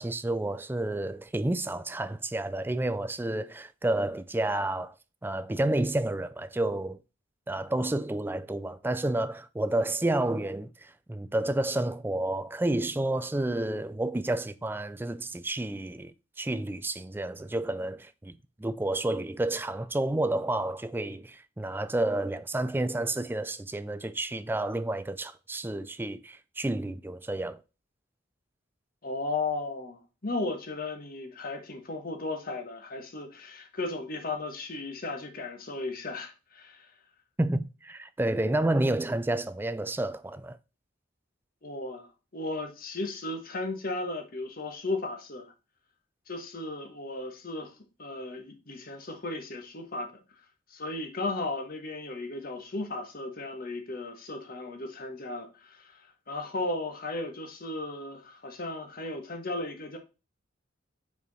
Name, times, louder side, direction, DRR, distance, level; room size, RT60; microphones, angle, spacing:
voice 1, 0.0-4.9 5.2-7.0 7.5-27.6 37.4-40.6, right 1 dB, 10° right, 0.4 m, -30 dB
voice 2, 29.0-36.9 41.6-42.1 42.3-45.5 46.3-50.2 50.7-60.0, left 2 dB, 50° left, 1.3 m, -35 dB
5.3 x 4.8 x 4.1 m
head